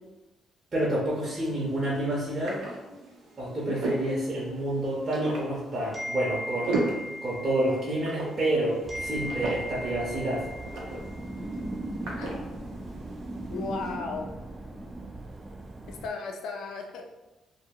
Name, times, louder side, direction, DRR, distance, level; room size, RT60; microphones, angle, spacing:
voice 1, 0.7-2.6 3.4-10.4, right 1 dB, 35° right, -6 dB, 0.7 m, -29 dB
sound 1, 1.0-13.9, right 2 dB, 85° right, 0.5 m, -38 dB
sound 2, 5.9-8.5 8.9-11.4, left 1 dB, ahead, 0.7 m, -39 dB
sound 3, 8.8-16.1, right 2 dB, 20° right, 0.3 m, -39 dB
voice 2, 13.5-14.3 15.9-17.1, left 4 dB, 80° left, 3 dB, 0.4 m, -35 dB
2.1 x 2.0 x 3.5 m, 1.0 s
cardioid pair, 90°, 0 cm